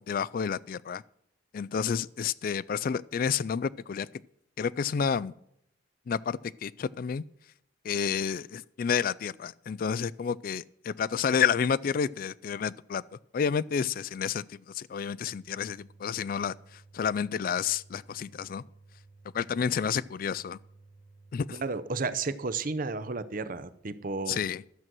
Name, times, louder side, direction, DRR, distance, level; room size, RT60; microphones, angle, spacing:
voice 1, 0.1-1.0 1.5-4.1 4.6-5.3 6.1-7.2 7.8-13.0 13.3-16.5 16.9-18.6 19.3-20.6 21.3-21.6 24.3-24.6, left 7 dB, 50° left, 22 dB, 0.3 m, -30 dB
sound 1, 15.2-21.3, right 3 dB, 85° left, 4.4 m, -56 dB
voice 2, 21.5-24.5, right 4 dB, 45° right, 13 dB, 0.6 m, -32 dB
12.5 x 7.6 x 6.1 m, 0.76 s
head